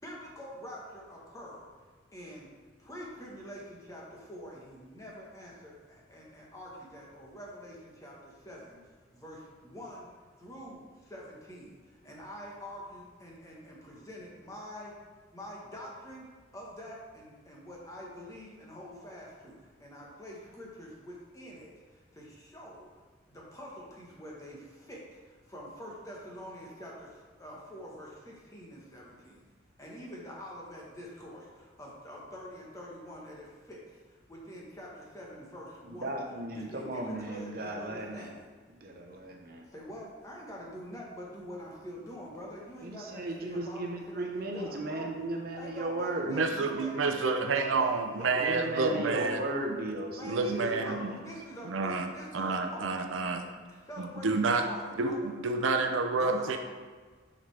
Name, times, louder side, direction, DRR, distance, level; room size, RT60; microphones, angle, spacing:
voice 1, 0.0-1.7 2.1-2.5 2.8-8.8 9.1-14.9 15.3-22.9 23.3-29.4 29.8-36.1 36.5-38.5 39.2-39.3 39.7-45.1 45.5-49.4 50.1-52.9 53.2-53.3 53.9-55.3 56.2-56.6, equal, 15° left, -4 dB, 1.2 m, -46 dB
voice 2, 35.8-38.3 38.7-39.6 42.8-46.4 48.3-51.2, right 1 dB, 50° right, 1 dB, 0.9 m, -36 dB
voice 3, 46.3-49.4 49.7-49.8 50.3-51.1 51.7-52.1 52.3-53.4 54.0-54.6 55.0-56.6, right 3 dB, 80° right, 5 dB, 0.5 m, -29 dB
7.2 x 5.2 x 3.3 m, 1.5 s
head